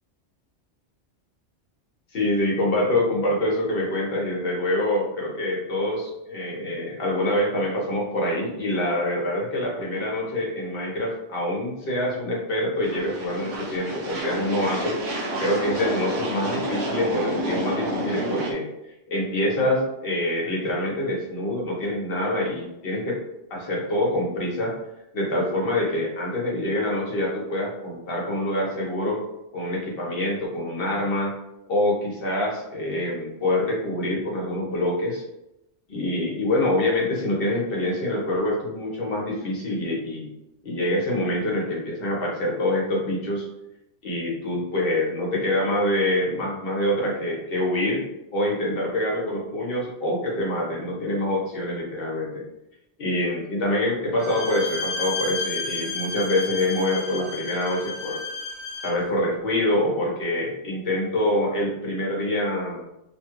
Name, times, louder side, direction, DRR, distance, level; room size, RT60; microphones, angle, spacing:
voice 1, 2.1-18.7 19.1-23.2 23.5-24.7 25.1-29.2 29.5-31.3 31.7-35.2 35.9-40.3 40.6-43.5 44.0-48.1 48.3-52.4 53.0-58.2 58.8-62.9, left 1 dB, 55° left, -3 dB, 1.1 m, -25 dB
sound 1, 12.8-18.5, right 1 dB, 80° right, 1.0 m, -29 dB
Bowed string instrument, 54.2-59.0, left 3 dB, 35° left, 1.3 m, -32 dB
2.9 x 2.3 x 2.9 m, 0.87 s
omnidirectional pair, 1.2 m